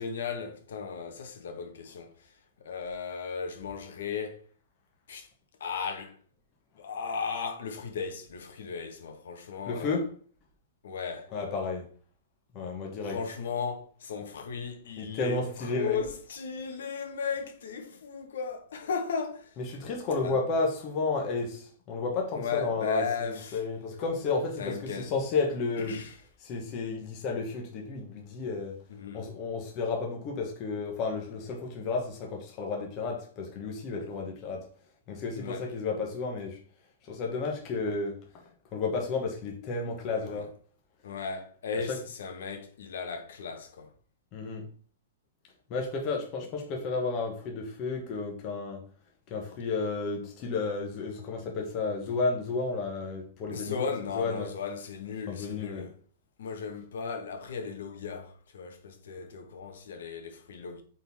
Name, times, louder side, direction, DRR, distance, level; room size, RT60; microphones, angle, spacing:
voice 1, 0.0-4.4 5.1-5.3 5.6-6.2 6.7-10.0 10.8-11.3 13.0-19.6 20.2-20.4 22.3-23.6 24.6-25.1 25.8-26.1 28.9-29.3 35.3-35.7 40.2-40.5 41.0-43.9 53.5-56.0 56.4-60.8, left 5 dB, 75° left, 1.6 m, -36 dB
voice 2, 9.7-10.1 11.3-11.9 12.5-13.2 15.0-16.0 19.6-23.0 23.5-26.0 26.4-28.8 29.1-34.7 35.1-36.6 37.1-38.2 38.7-40.5 41.9-42.0 44.3-44.7 45.7-48.8 49.3-53.9 54.1-54.5 55.3-55.9, left 4 dB, 25° left, 1.3 m, -32 dB
8.8 x 4.2 x 3.6 m
supercardioid pair, 175°, 0 cm